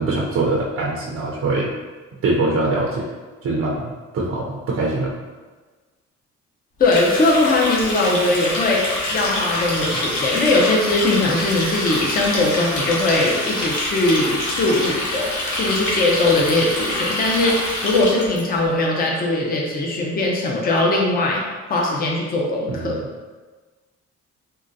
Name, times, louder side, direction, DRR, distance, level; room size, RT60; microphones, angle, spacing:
voice 1, 0.0-1.7 2.2-3.1 3.4-5.1 22.7-23.0, right 2 dB, 50° right, -3 dB, 0.5 m, -23 dB
Water tap faucet, 6.8-18.4, left 1 dB, 70° left, 1.0 m, -25 dB
voice 2, 6.8-8.8 9.1-15.3 15.6-21.4 21.7-23.0, left 2 dB, 30° left, -1 dB, 0.5 m, -20 dB
3.7 x 2.1 x 2.6 m, 1.3 s
cardioid pair, 90°, 30 cm